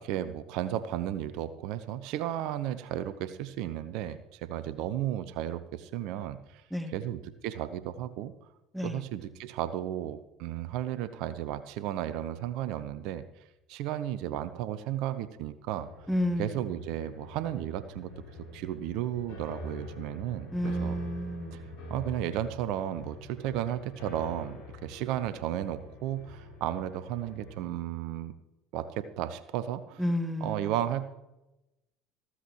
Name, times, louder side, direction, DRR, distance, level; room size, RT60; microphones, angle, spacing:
voice 1, 0.0-6.6 6.9-8.3 8.8-13.2 13.7-15.9 16.4-18.1 18.5-21.0 21.5-21.6 21.9-28.3 28.7-30.0 30.4-31.0, right 12 dB, 65° right, 13 dB, 0.7 m, -34 dB
sound 1, 15.8-27.6, left 1 dB, 65° left, 4.4 m, -45 dB
voice 2, 16.1-16.6 20.5-21.7 30.0-30.7, equal, ahead, 10 dB, 1.3 m, -31 dB
14.5 x 14.0 x 3.1 m, 0.96 s
hypercardioid pair, 65°, 0 cm